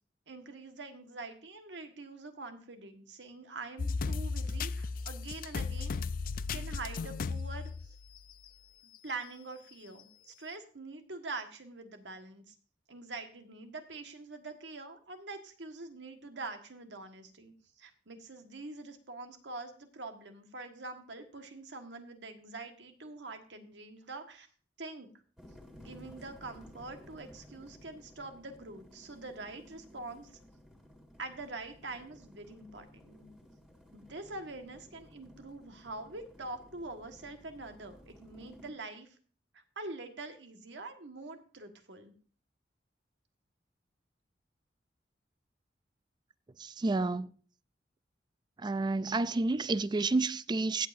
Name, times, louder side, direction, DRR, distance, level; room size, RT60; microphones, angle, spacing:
voice 1, 0.3-6.0 6.5-7.9 9.0-12.5 12.9-24.5 24.8-25.1 25.8-30.3 31.2-33.3 33.9-39.1 39.7-42.1, right 3 dB, 85° right, 1.6 m, -45 dB
sound 1, 3.8-8.5 8.9-9.0 10.0-10.1, left 4 dB, 50° left, 0.4 m, -35 dB
sound 2, 25.4-38.7, equal, 5° right, 1.8 m, -56 dB
voice 2, 46.6-47.3 48.6-50.9, right 3 dB, 25° right, 0.4 m, -30 dB
16.5 x 7.6 x 2.6 m
head